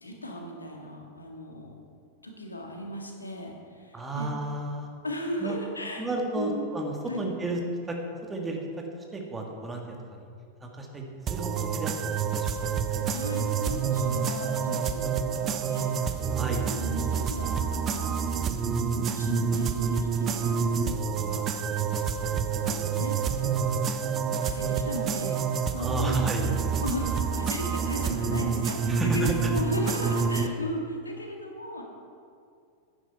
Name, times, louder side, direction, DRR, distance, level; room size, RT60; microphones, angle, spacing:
voice 1, 0.0-1.8 2.2-4.3 5.0-6.1 6.3-6.7 7.1-7.3 13.1-18.2 18.9-21.8 22.6-23.7 23.9-31.8, left 1 dB, 80° left, 1 dB, 1.8 m, -36 dB
voice 2, 3.9-4.9 5.4-5.5 6.0-7.6 7.9-8.0 8.3-8.6 9.1-9.8 10.6-11.0 11.3-12.5 16.3-16.6 25.8-26.4 28.9-29.3, right 2 dB, 15° right, 1 dB, 1.7 m, -32 dB
sound 1, 11.3-30.5, right 6 dB, 30° right, 0.6 m, -28 dB
10.0 x 10.0 x 5.8 m, 2.4 s
figure-of-eight pair, 90°, 0 cm